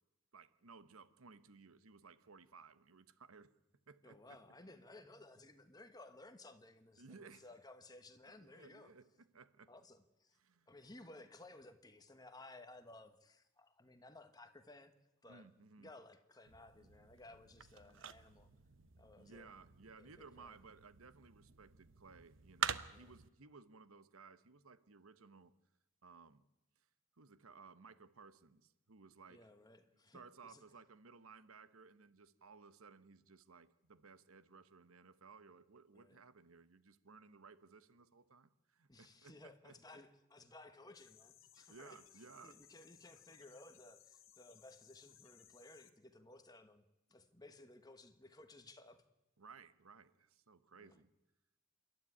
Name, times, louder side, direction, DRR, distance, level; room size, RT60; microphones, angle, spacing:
voice 1, 0.3-3.5 3.9-4.4 7.0-7.5 8.3-9.7 10.4-10.7 15.3-15.9 19.2-25.5 26.0-26.4 26.8-26.9 27.2-29.5 30.1-39.8 41.7-42.6 49.4-51.1, right 4 dB, 80° right, 1.1 m, -59 dB
voice 2, 4.0-8.9 9.7-10.4 10.7-14.9 15.2-15.5 15.8-18.5 19.0-19.5 20.0-20.5 22.9-23.1 29.3-30.6 35.9-36.2 38.9-42.0 42.4-46.8 47.1-49.1 50.8-51.0, left 2 dB, 20° left, 1.3 m, -58 dB
sound 1, 16.5-23.3, right 7 dB, 60° right, 0.8 m, -47 dB
sound 2, 40.9-45.9, left 11 dB, 65° left, 1.6 m, -64 dB
27.0 x 12.0 x 9.8 m
head